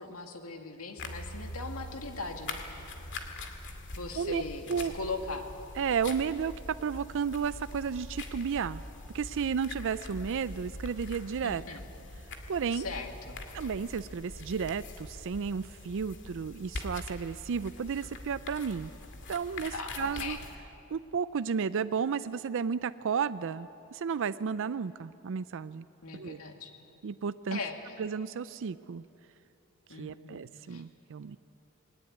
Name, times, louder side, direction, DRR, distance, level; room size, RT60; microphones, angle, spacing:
voice 1, 0.0-2.6 3.9-5.4 11.4-11.8 12.7-13.4 19.7-20.5 26.0-26.7 27.5-27.9 29.9-30.4 30.7-30.8, left 3 dB, 90° left, 4 dB, 2.2 m, -39 dB
sound 1, 1.0-20.6, left 2 dB, 60° left, 2.2 m, -43 dB
voice 2, 5.8-8.8 9.1-11.6 12.5-12.9 13.5-18.9 19.3-20.4 20.9-25.8 26.1-26.4 27.0-27.6 28.0-29.0 29.9-31.4, right 6 dB, 65° right, 14 dB, 0.4 m, -33 dB
21.0 x 18.5 x 9.6 m, 2.8 s
head